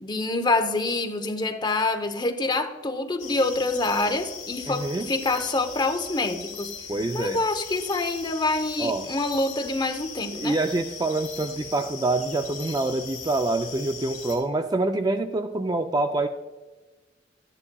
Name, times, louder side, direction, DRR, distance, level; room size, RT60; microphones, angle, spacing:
voice 1, 0.0-6.7 7.1-10.6, left 2 dB, 25° left, 5 dB, 0.7 m, -26 dB
sound 1, 3.2-14.4, left 6 dB, 40° left, 2.8 m, -39 dB
voice 2, 4.7-5.1 6.9-7.4 8.8-9.1 10.3-16.3, right 2 dB, 20° right, 7 dB, 0.4 m, -26 dB
12.5 x 9.8 x 2.3 m, 1.2 s
head